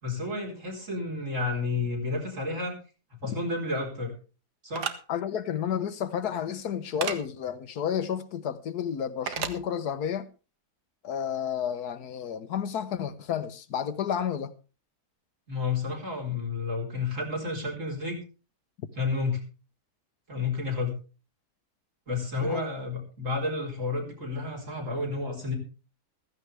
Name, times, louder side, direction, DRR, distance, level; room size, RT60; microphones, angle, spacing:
voice 1, 0.0-2.7 3.2-4.1 4.6-4.9 15.5-18.2 19.0-19.4 20.3-21.0 22.1-25.6, left 3 dB, 50° right, 4.5 m, -31 dB
sound 1, 4.7-5.0 7.0-7.2 9.3-9.6, right 7 dB, 90° right, 1.8 m, -31 dB
voice 2, 5.1-10.3 11.0-14.5 22.4-22.6, left 8 dB, 80° left, 1.4 m, -31 dB
15.5 x 14.5 x 3.3 m
omnidirectional pair, 1.7 m